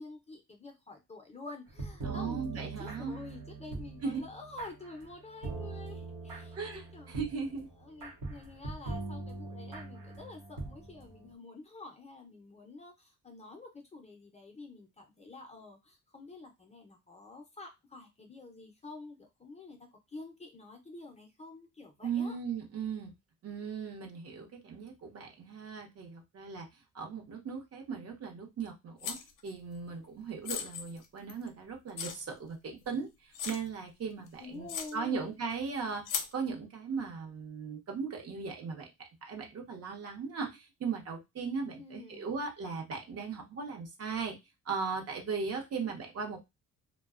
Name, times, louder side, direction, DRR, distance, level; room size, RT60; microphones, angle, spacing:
voice 1, 0.0-7.1 7.8-22.4 34.4-35.4 41.8-42.4, left 3 dB, 20° left, 3 dB, 0.5 m, -48 dB
sound 1, 1.7-11.3, right 3 dB, 90° right, 0.8 m, -42 dB
voice 2, 2.0-3.2 4.0-4.2 6.5-7.7 22.0-23.1 23.4-36.1 36.3-44.4 44.6-46.4, right 5 dB, 50° right, 2 dB, 0.7 m, -38 dB
sound 2, 29.0-29.5 30.5-31.5 32.0-32.2 32.8-32.9 33.3-33.7 34.3-34.4 34.7-34.9 36.1-36.3, left 7 dB, 70° left, 0.5 m, -37 dB
2.5 x 2.2 x 2.3 m, 0.21 s
cardioid pair, 110°, 33 cm